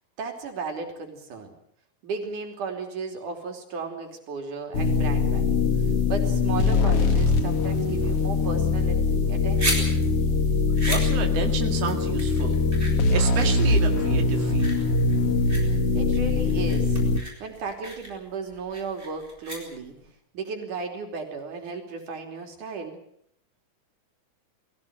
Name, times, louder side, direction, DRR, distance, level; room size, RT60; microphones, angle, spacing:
voice 1, 0.2-1.6 2.0-5.6 6.1-10.0 15.9-17.0 17.4-19.9 20.3-23.0, right 4 dB, 90° right, 4 dB, 4.7 m, -35 dB
sound 1, 4.7-17.2, left 3 dB, 50° left, 2.7 m, -22 dB
sound 2, 9.2-20.1, right 1 dB, 15° right, 7.2 m, -35 dB
voice 2, 10.9-12.7 13.1-14.8, right 6 dB, 55° right, 3 dB, 3.2 m, -31 dB
21.5 x 17.0 x 9.4 m, 0.72 s
omnidirectional pair, 3.5 m